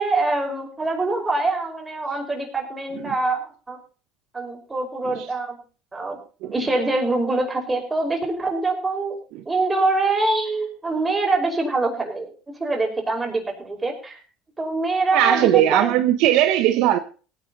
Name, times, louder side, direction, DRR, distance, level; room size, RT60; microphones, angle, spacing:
voice 1, 0.0-3.8 4.3-5.6 5.9-6.2 6.5-9.2 9.5-14.2 14.6-15.9, right 2 dB, 20° right, 2 dB, 5.5 m, -24 dB
voice 2, 15.1-17.0, right 13 dB, 70° right, 9 dB, 1.0 m, -18 dB
17.5 x 10.5 x 4.1 m, 0.37 s
supercardioid pair, 85°, 0 cm